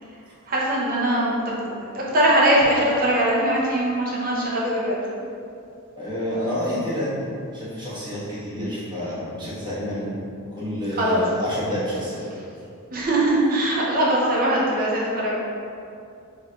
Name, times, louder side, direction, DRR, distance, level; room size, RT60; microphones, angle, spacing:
voice 1, 0.5-1.9 2.1-5.0 11.0-11.2 12.9-15.4, right 1 dB, 40° right, -5 dB, 0.8 m, -21 dB
voice 2, 6.0-7.3 7.5-10.1 10.6-12.2, equal, 20° right, -9 dB, 1.1 m, -28 dB
3.2 x 2.6 x 4.3 m, 2.5 s
head